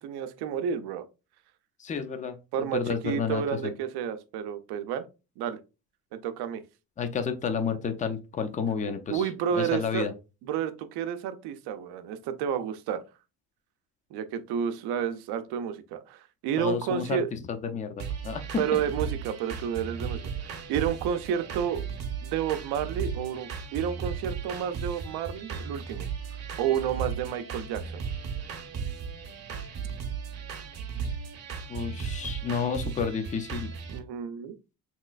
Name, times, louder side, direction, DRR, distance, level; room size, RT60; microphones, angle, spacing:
voice 1, 0.0-1.0 2.5-5.1 5.4-5.6 6.1-6.6 9.1-10.1 10.4-13.0 14.1-17.3 18.6-21.8 22.2-26.1 26.6-28.0 33.9-34.5, right 8 dB, 90° right, 10 dB, 0.5 m, -30 dB
voice 2, 1.8-3.7 7.0-9.3 9.5-10.1 16.6-18.5 31.7-33.7, left 6 dB, 20° left, 8 dB, 0.4 m, -31 dB
sound 1, 18.0-34.0, right 6 dB, 45° right, 0.7 m, -36 dB
3.1 x 3.0 x 2.3 m, 0.29 s
cardioid pair, 115°, 38 cm